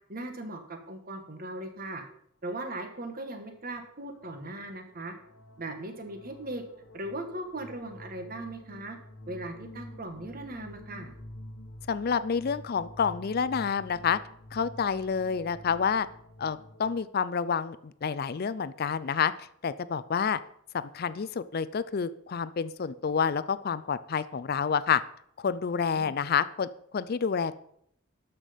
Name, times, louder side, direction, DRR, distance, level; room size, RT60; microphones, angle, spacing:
voice 1, 0.1-2.0 2.4-5.1 5.6-6.6 6.9-9.0 9.3-11.1 25.9-26.1, right 1 dB, 45° right, 6 dB, 1.5 m, -38 dB
sound 1, 3.7-3.9 4.2-17.0, left 1 dB, 90° left, 1.2 m, -49 dB
voice 2, 11.9-14.2 14.5-16.1 16.4-20.4 20.9-25.0 25.4-27.6, left 6 dB, 45° left, 16 dB, 0.4 m, -29 dB
12.5 x 6.0 x 5.1 m, 0.69 s
head